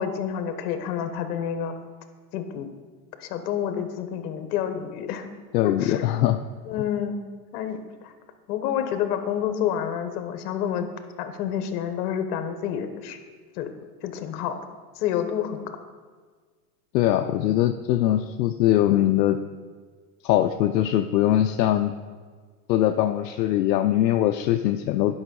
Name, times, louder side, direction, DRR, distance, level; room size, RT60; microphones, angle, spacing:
voice 1, 0.0-1.8 2.3-2.7 3.2-5.3 5.6-6.1 6.6-7.2 7.5-8.1 8.5-10.9 11.2-13.2 13.6-13.7 14.0-14.5 14.9-15.7, left 9 dB, 65° left, 8 dB, 1.2 m, -29 dB
voice 2, 5.5-6.4 16.9-19.4 20.2-21.9 22.7-25.2, left 13 dB, 80° left, 6 dB, 0.6 m, -21 dB
9.7 x 5.6 x 5.3 m, 1.5 s
supercardioid pair, 130°, 49 cm